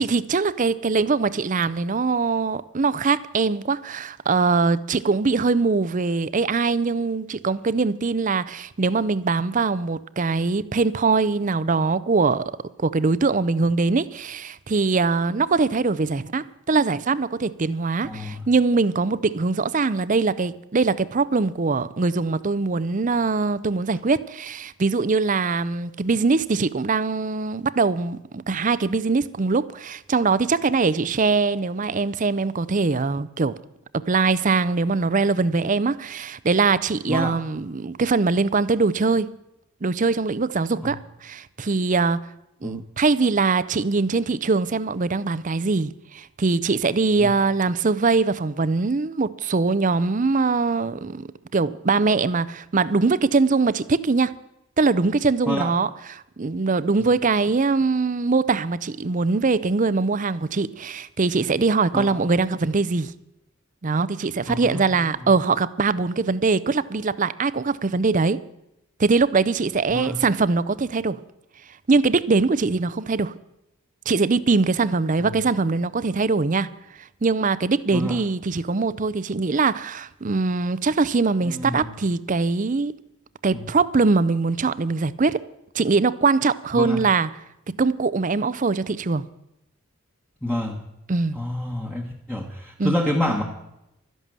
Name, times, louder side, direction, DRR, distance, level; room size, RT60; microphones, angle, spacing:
voice 1, 0.0-12.4 12.8-33.6 33.9-39.3 39.8-42.2 42.6-54.3 54.8-63.1 63.8-68.4 69.0-71.2 71.9-73.3 74.1-76.7 77.2-82.9 83.4-85.4 85.7-87.3 87.8-89.2 91.1-91.4 92.8-93.0, right 4 dB, 35° right, 0.5 m, -22 dB
voice 2, 18.0-18.4 37.1-37.4 40.8-40.9 42.6-42.8 47.2-47.3 55.5-55.7 61.9-62.2 64.5-64.8 69.9-70.2 75.3-75.4 77.9-78.2 81.4-81.9 83.5-83.6 86.7-87.0 90.4-90.8 91.3-93.4, left 1 dB, 5° left, 1.2 m, -28 dB
12.5 x 11.0 x 7.5 m
head